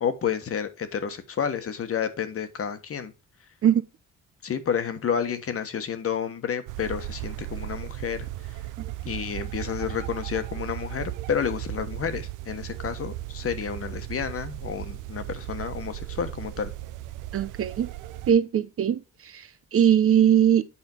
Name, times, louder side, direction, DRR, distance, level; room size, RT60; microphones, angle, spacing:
voice 1, 0.0-3.1 4.4-8.6 9.0-16.7, left 7 dB, 50° left, 1.3 m, -30 dB
sound 1, 6.7-18.3, right 15 dB, 90° right, 0.6 m, -36 dB
voice 2, 17.3-17.9 18.3-19.0 19.3-19.4 19.7-20.6, right 9 dB, 50° right, 0.7 m, -20 dB
8.5 x 4.3 x 4.4 m
cardioid pair, 90°, 30 cm